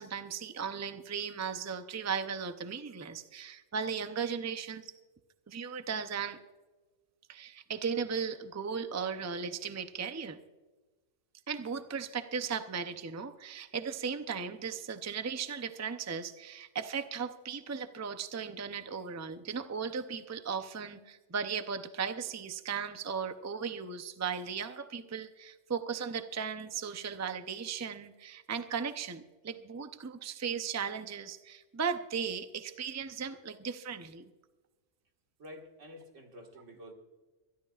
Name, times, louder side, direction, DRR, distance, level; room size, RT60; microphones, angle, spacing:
voice 1, 0.0-4.9 5.5-6.4 7.3-10.4 11.5-34.2, right 6 dB, 20° right, 9 dB, 0.5 m, -37 dB
voice 2, 35.4-36.9, equal, 85° right, 2 dB, 2.2 m, -49 dB
24.0 x 12.5 x 2.4 m, 1.2 s
omnidirectional pair, 1.2 m